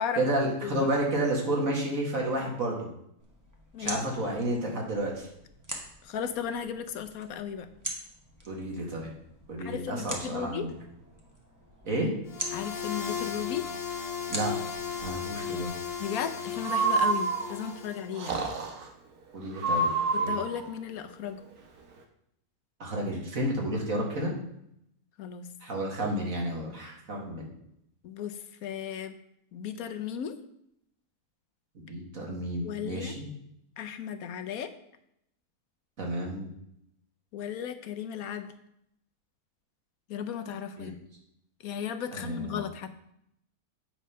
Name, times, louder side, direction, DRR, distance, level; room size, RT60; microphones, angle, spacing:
voice 1, 0.2-2.9 3.8-5.3 8.5-9.1 9.5-10.7 11.8-12.1 14.3-14.6 15.0-15.7 19.3-19.9 20.2-20.3 22.8-24.3 25.6-27.5 31.9-33.3 36.0-36.5 40.8-40.9 42.1-42.6, right 1 dB, 60° right, -1 dB, 2.3 m, -31 dB
sound 1, 3.2-16.0, right 1 dB, 15° right, 1.2 m, -44 dB
voice 2, 3.7-4.1 6.0-7.7 9.6-10.7 12.5-13.7 16.0-18.4 20.1-21.4 25.2-25.5 28.0-29.2 29.5-30.4 32.6-33.1 33.8-34.7 37.3-38.5 40.1-41.0 41.6-42.9, left 8 dB, 75° left, 10 dB, 1.2 m, -35 dB
sound 2, 12.3-18.1, left 7 dB, 45° left, 1.0 m, -36 dB
Breathing, 16.6-17.7 18.2-18.9 19.6-20.6, right 3 dB, 80° right, 1.6 m, -27 dB
8.6 x 5.2 x 5.5 m, 0.75 s
omnidirectional pair, 1.6 m